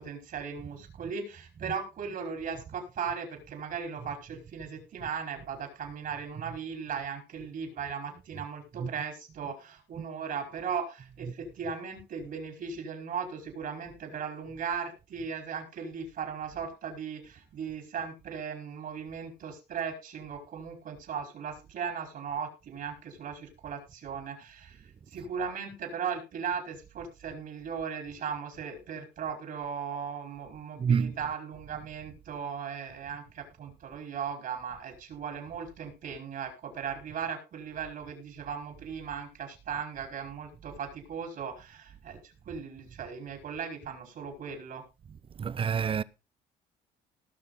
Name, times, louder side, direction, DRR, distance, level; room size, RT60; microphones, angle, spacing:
voice 1, 0.0-24.8 25.1-44.8, right 6 dB, 55° right, 5.1 m, -37 dB
voice 2, 30.8-31.1 45.4-46.0, right 7 dB, 30° right, 0.8 m, -29 dB
19.0 x 6.6 x 4.0 m
cardioid pair, 110°, 17 cm